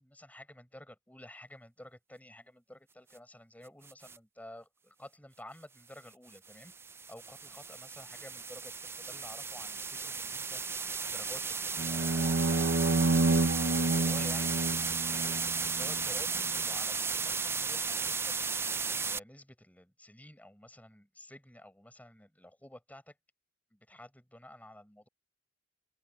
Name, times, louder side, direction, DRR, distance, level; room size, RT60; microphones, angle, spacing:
voice 1, 0.0-6.7 7.1-10.6 11.0-12.7 13.1-13.4 13.8-14.6 15.1-18.4 19.0-23.1 23.7-25.1, left 1 dB, 10° left, 7.2 m, -52 dB
sound 1, 3.9-4.2 6.3-19.2, right 5 dB, 10° right, 0.4 m, -35 dB
sound 2, 11.8-16.0, right 2 dB, 60° right, 0.9 m, -29 dB
open air
head